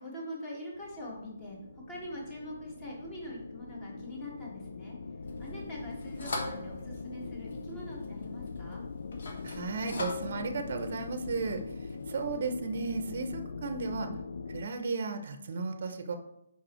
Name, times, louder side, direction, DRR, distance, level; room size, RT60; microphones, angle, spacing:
voice 1, 0.0-5.0 5.4-8.8, equal, 15° left, -3 dB, 1.5 m, -43 dB
sound 1, 0.8-14.7, left 4 dB, 70° left, 0.3 m, -42 dB
sound 2, 5.2-12.6, left 2 dB, 55° left, 1.2 m, -43 dB
voice 2, 9.4-11.6 12.1-14.1 14.5-16.1, right 4 dB, 45° right, 8 dB, 0.6 m, -34 dB
5.3 x 5.1 x 4.3 m, 0.80 s
hypercardioid pair, 170°, 0 cm